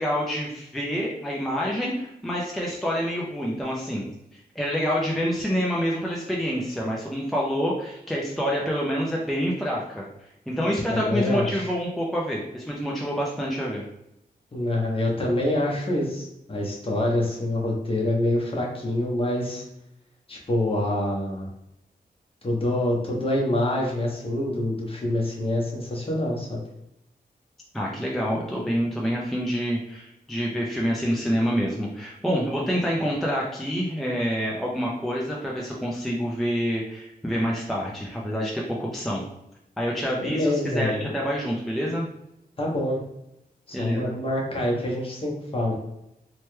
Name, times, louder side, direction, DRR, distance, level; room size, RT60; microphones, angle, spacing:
voice 1, 0.0-4.1 4.6-10.1 10.5-13.8 27.7-39.2 39.8-42.1 43.7-44.1, equal, ahead, -4 dB, 0.4 m, -27 dB
voice 2, 10.9-11.7 14.5-19.6 20.3-21.5 22.4-26.6 40.2-41.0 42.6-43.0 43.7-45.7, left 1 dB, 35° left, -2 dB, 0.8 m, -26 dB
3.0 x 2.2 x 3.1 m, 0.84 s
wide cardioid pair, 130°, 17 cm